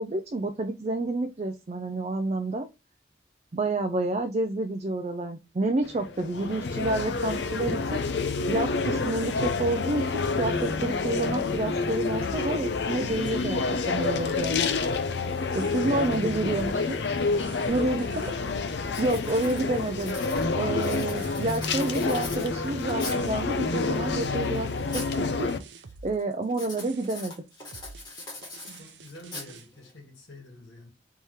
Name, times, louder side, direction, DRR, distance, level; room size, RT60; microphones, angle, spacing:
voice 1, 0.0-2.7 3.5-8.0 8.5-13.6 13.9-14.7 15.5-17.2 17.7-18.3 19.0-20.2 20.5-24.7 24.9-25.0 25.4-25.5 26.0-27.3, right 2 dB, 35° right, 0.4 m, -29 dB
sound 1, 5.8-25.6, left 4 dB, 70° left, 0.5 m, -28 dB
sound 2, 14.6-29.7, right 4 dB, 80° right, 0.6 m, -49 dB
voice 2, 15.3-16.5 17.5-18.2 28.7-30.9, left 1 dB, 90° left, 1.7 m, -47 dB
Writing, 18.2-18.5 18.8-23.4 23.9-25.2 25.5-25.9 26.5-29.9, left 2 dB, 25° left, 1.5 m, -42 dB
3.5 x 3.2 x 4.1 m
head